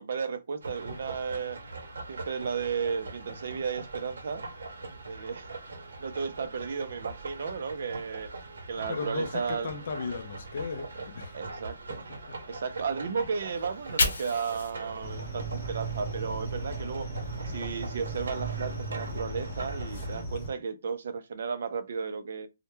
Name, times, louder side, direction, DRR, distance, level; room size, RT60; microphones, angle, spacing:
voice 1, 0.0-1.6 2.1-4.4 5.1-5.5 6.0-8.3 8.7-9.7 11.3-12.0 12.5-17.1 17.5-22.5, right 6 dB, 50° right, 0.4 m, -34 dB
sound 1, 0.6-20.2, right 3 dB, 85° right, 0.6 m, -42 dB
voice 2, 8.9-11.4 11.9-12.0 12.3-12.4, left 5 dB, 40° left, 0.4 m, -36 dB
Fire, 13.6-16.8 17.1-19.2, left 3 dB, 80° left, 0.7 m, -36 dB
sound 2, 15.0-20.5, right 3 dB, 25° left, 0.8 m, -37 dB
2.2 x 2.0 x 2.9 m
hypercardioid pair, 180°, 0 cm